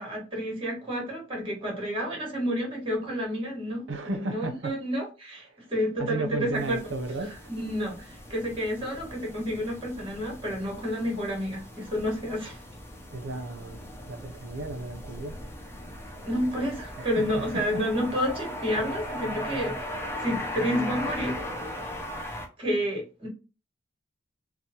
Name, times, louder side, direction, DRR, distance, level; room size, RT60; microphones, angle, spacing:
voice 1, 0.0-6.8 7.5-12.6 16.2-19.8 20.2-21.3 22.6-23.3, equal, 30° right, 1.2 m, -30 dB
voice 2, 3.9-4.8 5.5-5.6 6.0-7.5 13.1-13.8 14.1-15.4 17.0-17.8, right 2 dB, 80° right, 0.5 m, -34 dB
sound 1, 6.5-22.5, left 1 dB, 15° left, 0.4 m, -39 dB
2.9 x 2.0 x 2.7 m
head